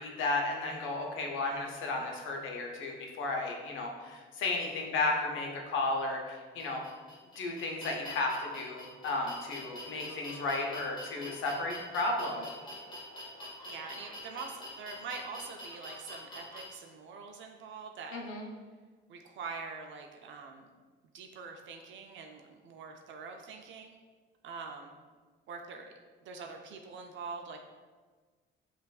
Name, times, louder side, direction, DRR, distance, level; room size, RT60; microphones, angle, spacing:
voice 1, 0.0-6.8 7.4-12.5 18.1-18.5, left 2 dB, 80° left, 1 dB, 0.7 m, -34 dB
sound 1, 6.6-16.6, left 1 dB, 25° left, 1.1 m, -46 dB
voice 2, 13.7-18.2 19.1-20.7 21.1-24.0 24.4-25.0 25.5-25.9 26.2-27.6, right 4 dB, 70° right, 3 dB, 0.4 m, -44 dB
5.2 x 2.5 x 2.3 m, 1.4 s
cardioid pair, 90°, 20 cm